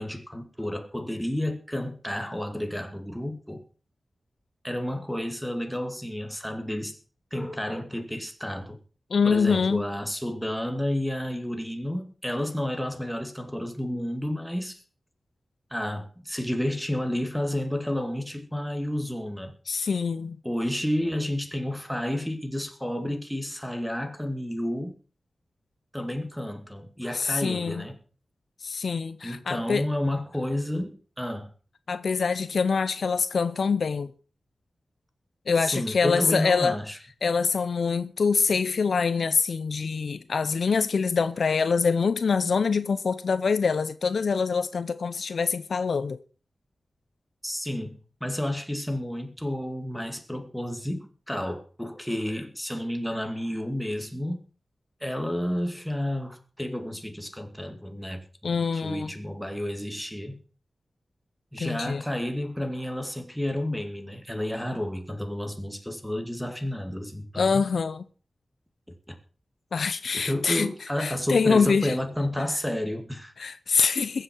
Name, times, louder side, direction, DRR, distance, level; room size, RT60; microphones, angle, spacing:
voice 1, 0.0-3.6 4.6-7.0 7.3-8.8 9.2-14.8 15.7-19.5 20.4-24.9 25.9-28.0 29.2-31.5 35.6-37.0 47.4-54.4 55.0-60.4 61.5-67.7 68.9-69.2 70.1-73.3, left 1 dB, ahead, 2.2 m, -31 dB
voice 2, 9.1-9.8 19.7-20.4 27.1-27.8 28.6-29.9 31.9-34.1 35.5-36.8 37.2-46.2 58.4-59.1 61.6-62.0 67.4-68.0 69.7-70.7 71.0-72.0 73.4-74.2, left 5 dB, 75° left, 0.6 m, -25 dB
21.5 x 7.9 x 4.6 m
wide cardioid pair, 95°, 0 cm